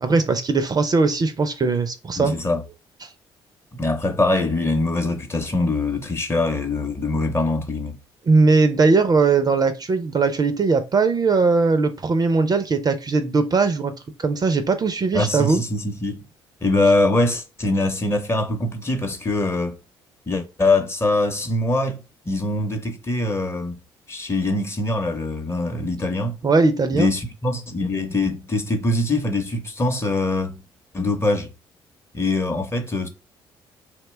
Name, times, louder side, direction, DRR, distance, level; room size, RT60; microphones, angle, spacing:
voice 1, 0.0-2.3 3.0-3.1 8.3-13.9 14.2-15.6 26.4-27.1, right 4 dB, 30° right, 0.4 m, -19 dB
voice 2, 2.2-2.6 3.8-8.0 15.1-16.2 16.6-19.8 20.3-22.0 22.3-23.8 24.1-26.4 26.9-30.7 30.9-31.5 32.1-33.1, left 2 dB, 20° left, 0.7 m, -23 dB
2.8 x 2.1 x 3.2 m
hypercardioid pair, 50°, 12 cm